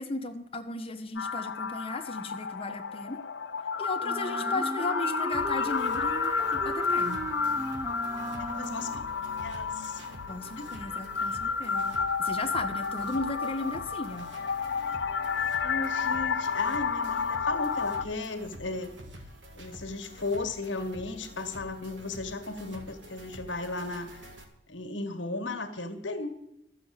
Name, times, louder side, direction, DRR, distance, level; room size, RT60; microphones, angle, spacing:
voice 1, 0.0-3.2 3.8-7.2 10.3-14.3, left 2 dB, 30° left, 6 dB, 1.2 m, -36 dB
sound 1, 1.2-18.0, left 5 dB, 70° left, 0.6 m, -31 dB
Wind instrument woodwind instrument, 4.0-9.1, right 2 dB, 15° right, 0.7 m, -37 dB
voice 2, 4.3-4.6 8.4-9.0 9.4-10.1 10.6-10.7 15.6-18.9 19.5-24.4 24.7-26.3, left 2 dB, 85° left, 7 dB, 1.7 m, -35 dB
sound 2, 5.3-24.4, equal, 85° right, 1.8 m, -48 dB
13.0 x 7.0 x 8.9 m, 0.83 s
head